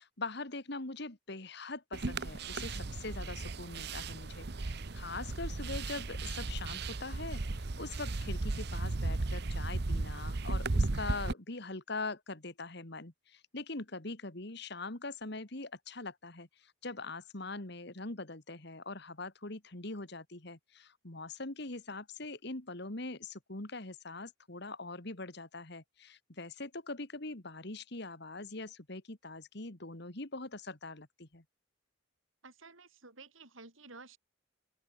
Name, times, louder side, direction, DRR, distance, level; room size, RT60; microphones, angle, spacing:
voice 1, 0.0-31.4, left 3 dB, 55° left, 2.2 m, -42 dB
sound 1, 1.9-11.3, right 2 dB, 50° right, 0.9 m, -35 dB
voice 2, 32.4-34.2, right 3 dB, 75° right, 5.8 m, -53 dB
open air
head